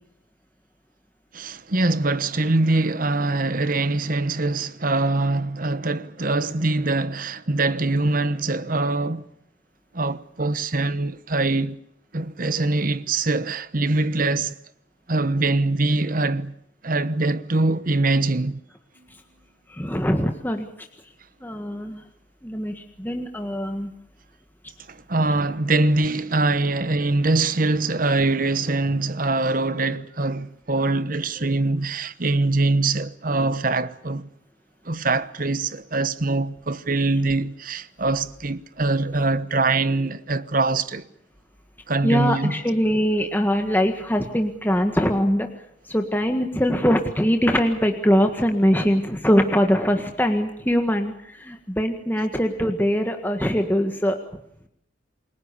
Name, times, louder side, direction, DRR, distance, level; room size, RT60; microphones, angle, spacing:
voice 1, 1.3-9.2 9.9-11.8 12.1-14.5 15.1-16.5 16.8-18.6 24.9-34.3 34.8-41.0 41.9-42.6, right 2 dB, 45° right, 1.1 m, -23 dB
voice 2, 19.7-20.7 21.4-22.0 22.4-23.9 42.0-45.5 45.9-54.2, equal, 10° left, 1.7 m, -22 dB
29.0 x 22.0 x 7.0 m
head